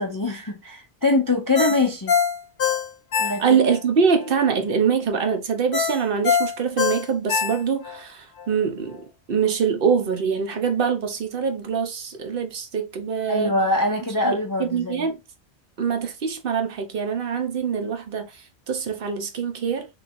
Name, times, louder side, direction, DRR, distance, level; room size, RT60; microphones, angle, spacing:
voice 1, 0.0-2.2 3.2-3.6 13.3-15.1, left 2 dB, 30° left, 0.4 m, -23 dB
Ringtone, 1.5-3.8 4.2-4.3 5.7-8.0 8.4-8.5, left 7 dB, 55° left, 0.9 m, -23 dB
voice 2, 3.4-13.5 14.2-15.2 15.8-19.9, right 6 dB, 60° right, 0.8 m, -24 dB
3.3 x 3.1 x 2.4 m
omnidirectional pair, 1.1 m